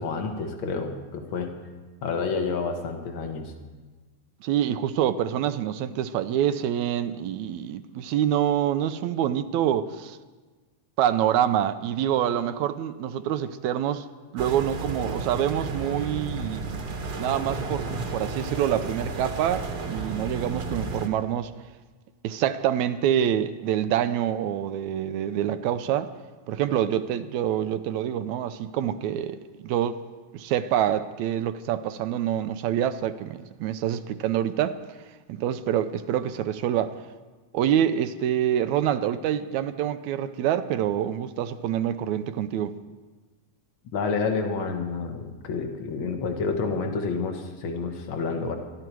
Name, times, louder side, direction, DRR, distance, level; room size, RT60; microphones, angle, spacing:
voice 1, 0.0-1.5 2.0-3.5 43.9-48.5, left 4 dB, 50° left, 4 dB, 1.9 m, -29 dB
voice 2, 4.4-10.2 11.0-14.1 14.3-17.9 18.1-21.5 22.2-26.1 26.5-30.0 30.3-34.8 35.3-37.0 37.5-42.8, right 10 dB, 80° right, 12 dB, 2.0 m, -26 dB
sound 1, 14.4-21.1, right 3 dB, 45° right, 1.4 m, -32 dB
25.5 x 11.5 x 4.6 m, 1.3 s
omnidirectional pair, 3.3 m